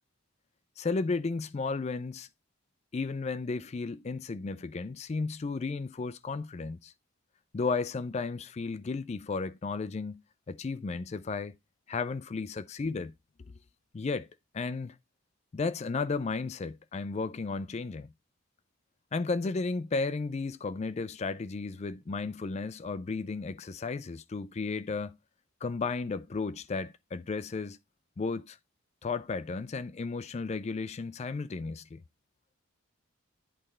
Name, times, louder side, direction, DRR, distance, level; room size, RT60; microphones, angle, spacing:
voice 1, 0.8-2.3 2.9-6.9 7.5-10.2 10.5-11.5 11.9-13.1 13.9-14.3 14.5-15.0 15.5-18.1 19.1-25.2 25.6-27.8 28.2-28.6 29.0-32.0, left 4 dB, 30° left, 0.3 m, -34 dB
8.5 x 3.3 x 4.2 m
head